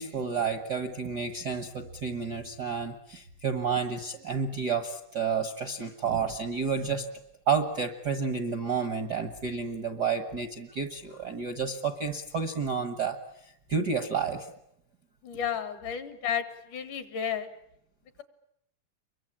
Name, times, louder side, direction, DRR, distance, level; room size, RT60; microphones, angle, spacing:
voice 1, 0.0-7.1 7.5-13.2 13.4-14.5, right 5 dB, 55° right, 7 dB, 1.2 m, -30 dB
voice 2, 15.2-16.4 16.7-17.5, left 8 dB, 75° left, 10 dB, 3.3 m, -32 dB
28.5 x 23.0 x 8.8 m, 0.76 s
omnidirectional pair, 3.7 m